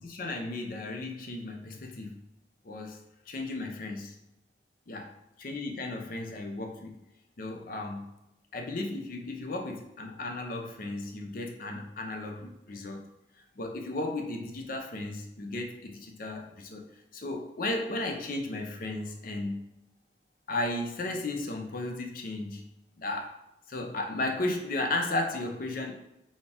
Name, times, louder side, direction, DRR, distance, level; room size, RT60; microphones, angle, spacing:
voice 1, 0.0-2.2 2.6-3.0 3.3-4.1 4.9-5.1 5.4-6.9 7.4-8.0 8.5-13.0 13.6-16.9 17.1-19.6 20.5-22.6 23.0-23.3 23.7-25.9, left 2 dB, 50° left, 3 dB, 0.5 m, -34 dB
4.2 x 2.3 x 3.5 m, 0.87 s
head